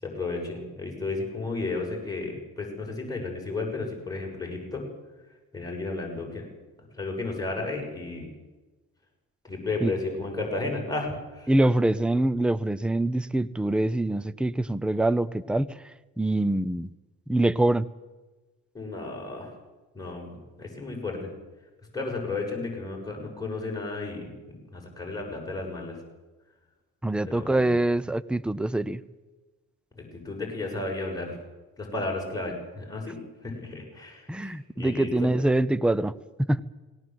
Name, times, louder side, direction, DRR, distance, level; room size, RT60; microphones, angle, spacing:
voice 1, 0.0-4.8 5.5-6.4 7.0-8.3 9.4-11.5 18.7-19.5 19.9-21.3 21.9-26.0 27.2-27.7 29.9-31.4 31.8-35.3, left 3 dB, 10° left, -1 dB, 6.8 m, -33 dB
voice 2, 11.5-16.9 17.3-17.8 27.0-29.0 34.3-36.1 36.4-36.6, right 1 dB, 5° right, 18 dB, 0.7 m, -24 dB
19.5 x 18.0 x 7.8 m, 1.2 s
cardioid pair, 90°, 30 cm